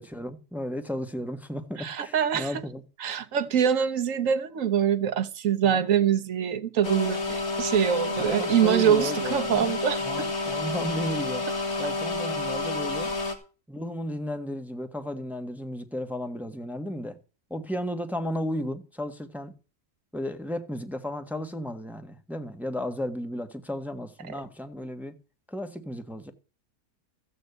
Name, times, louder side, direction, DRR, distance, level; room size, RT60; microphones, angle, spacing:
voice 1, 0.0-2.8 5.6-5.8 8.2-9.7 10.0-11.4 11.8-13.1 13.7-17.2 17.5-19.5 20.1-25.2 25.5-26.3, equal, ahead, 1.2 m, -34 dB
voice 2, 1.8-2.6 3.0-10.3, right 8 dB, 65° right, 1.1 m, -24 dB
sound 1, 6.8-13.3, left 2 dB, 50° left, 2.2 m, -30 dB
14.5 x 5.2 x 8.1 m
omnidirectional pair, 1.6 m